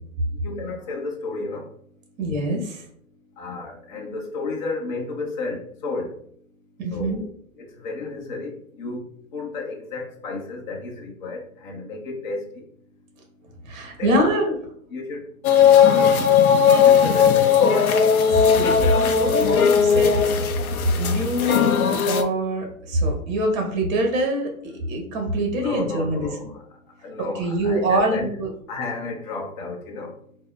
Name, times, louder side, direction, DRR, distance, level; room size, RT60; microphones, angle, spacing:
voice 1, 0.4-1.7 3.4-6.2 6.9-7.3 7.6-9.0 9.3-12.6 14.0-14.3 14.9-15.4 15.8-16.2 16.8-17.5 25.5-26.6 27.0-28.3 28.7-30.2, left 3 dB, 35° left, 0 dB, 0.7 m, -32 dB
voice 2, 2.2-2.8 6.8-7.2 13.6-14.6 18.3-18.8 19.0-20.2 21.0-26.3 27.2-28.5, right 1 dB, 30° right, 2 dB, 0.8 m, -24 dB
sound 1, 15.4-22.2, left 7 dB, 80° left, 0.5 m, -17 dB
4.0 x 2.1 x 2.3 m, 0.64 s
hypercardioid pair, 135°, 43 cm